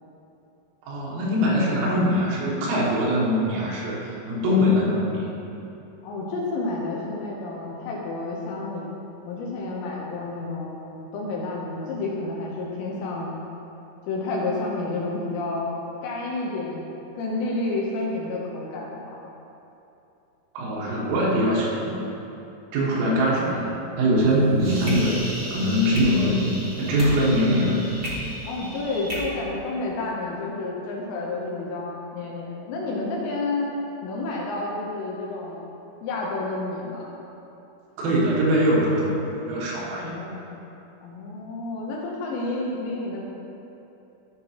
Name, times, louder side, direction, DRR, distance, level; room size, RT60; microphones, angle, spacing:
voice 1, 0.8-5.3 20.6-22.0 22.7-25.2 25.5-27.9 38.0-39.2 39.5-40.1, equal, 85° right, -5 dB, 4.1 m, -22 dB
voice 2, 6.0-8.9 9.3-13.3 14.1-15.8 16.0-16.8 17.2-19.0 23.3-23.4 28.4-33.8 34.0-35.6 36.0-37.1 40.0-40.4 41.0-43.2, left 2 dB, 75° left, -4 dB, 2.8 m, -30 dB
sound 1, 24.2-29.2, equal, 50° right, 1.4 m, -35 dB
14.0 x 6.0 x 2.9 m, 2.9 s
omnidirectional pair, 5.8 m